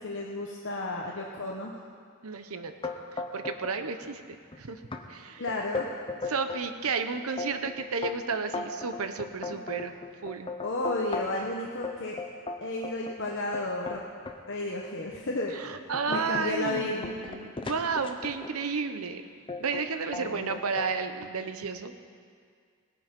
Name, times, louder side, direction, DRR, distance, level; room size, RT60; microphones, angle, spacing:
voice 1, 0.0-1.8 5.4-6.0 9.5-9.6 10.6-12.2 12.6-14.0 14.5-15.5 16.1-17.2 20.2-20.6, left 2 dB, 55° left, -1 dB, 1.0 m, -33 dB
voice 2, 2.2-2.7 3.1-4.8 5.1-5.5 6.3-9.9 10.2-10.5 15.5-19.2 19.6-21.9, right 5 dB, 75° right, 9 dB, 0.8 m, -32 dB
sound 1, 2.8-3.8 4.0-4.6 4.9-5.0 5.5-6.7 7.1-11.5 11.8-14.4 15.0-15.1 15.6-18.7 19.5-19.9 20.1-20.9, left 3 dB, 25° left, 0.8 m, -37 dB
18.5 x 9.3 x 5.3 m, 2.1 s
head